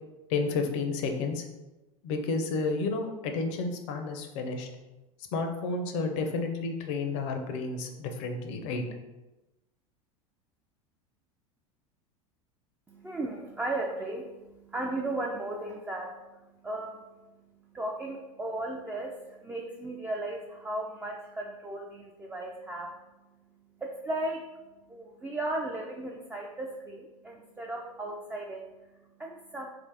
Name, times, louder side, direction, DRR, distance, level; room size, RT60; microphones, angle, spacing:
voice 1, 0.3-1.5 2.0-4.7 5.3-8.8, left 3 dB, 55° left, 5 dB, 0.6 m, -31 dB
voice 2, 12.9-29.7, right 1 dB, 10° right, -1 dB, 0.4 m, -36 dB
3.8 x 2.5 x 3.3 m, 1.0 s
hypercardioid pair, 80°, 18 cm